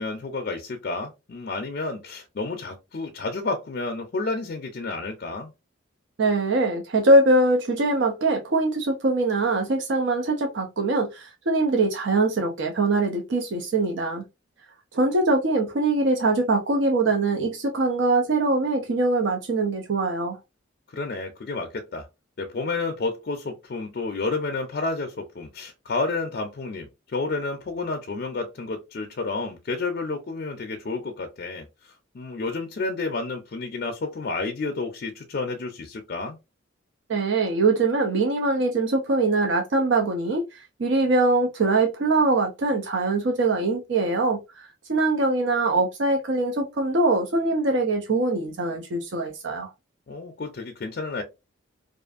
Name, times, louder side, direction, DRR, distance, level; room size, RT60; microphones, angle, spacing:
voice 1, 0.0-5.5 20.9-22.1 22.4-36.4 50.1-51.2, left 3 dB, 45° left, 0.4 m, -30 dB
voice 2, 6.2-14.2 14.9-20.4 37.1-49.7, right 2 dB, 60° right, 0.5 m, -23 dB
2.5 x 2.4 x 2.3 m
head